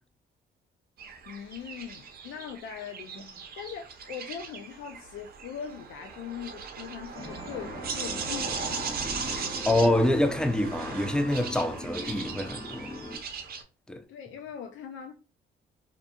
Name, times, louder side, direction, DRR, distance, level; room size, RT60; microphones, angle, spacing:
sound 1, 1.0-13.6, right 5 dB, 50° right, 0.6 m, -38 dB
voice 1, 1.3-3.2 3.6-8.9 14.1-15.1, left 8 dB, 80° left, 0.4 m, -40 dB
sound 2, 7.1-13.2, left 1 dB, 25° left, 1.0 m, -41 dB
voice 2, 9.2-12.9 13.9-14.0, left 1 dB, 5° left, 0.4 m, -26 dB
2.5 x 2.3 x 2.5 m
cardioid pair, 90°, 20 cm